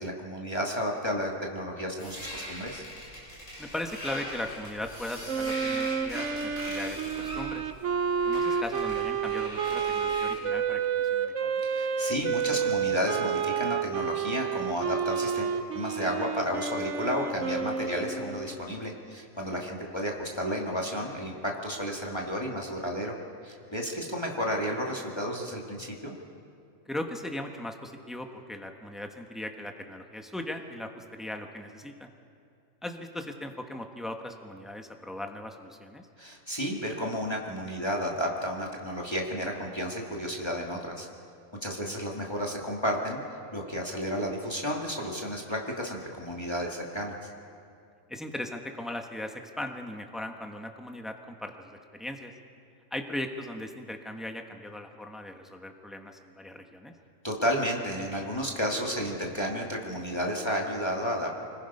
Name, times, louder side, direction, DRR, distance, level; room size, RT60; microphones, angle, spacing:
voice 1, 0.0-2.8 11.6-23.1 23.4-26.2 36.2-41.1 41.6-43.2 43.5-47.3 57.2-61.3, equal, 20° left, -1 dB, 2.0 m, -32 dB
sound 1, 2.0-10.5, left 1 dB, 70° left, 7.2 m, -41 dB
voice 2, 3.6-7.6 8.2-11.5 19.5-19.9 26.9-32.1 32.8-36.1 41.8-41.9 48.1-52.3 52.9-56.9, left 1 dB, ahead, 4 dB, 1.2 m, -38 dB
Wind instrument woodwind instrument, 5.3-18.7, right 6 dB, 60° right, 1.2 m, -30 dB
25.0 x 20.0 x 5.5 m, 2.4 s
omnidirectional pair, 1.5 m